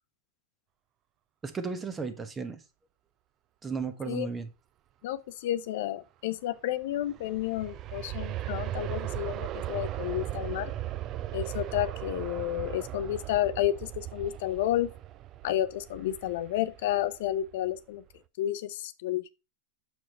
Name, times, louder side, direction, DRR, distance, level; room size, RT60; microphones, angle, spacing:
voice 1, 1.4-2.6 3.6-4.5, right 5 dB, 20° right, 1.1 m, -34 dB
voice 2, 5.0-10.7 11.3-14.9 15.4-18.0 18.4-19.3, left 13 dB, 65° left, 0.5 m, -31 dB
Aircraft, 6.8-17.7 18.1-18.2, right 13 dB, 40° right, 0.4 m, -37 dB
6.4 x 4.8 x 4.3 m
hypercardioid pair, 110°, 0 cm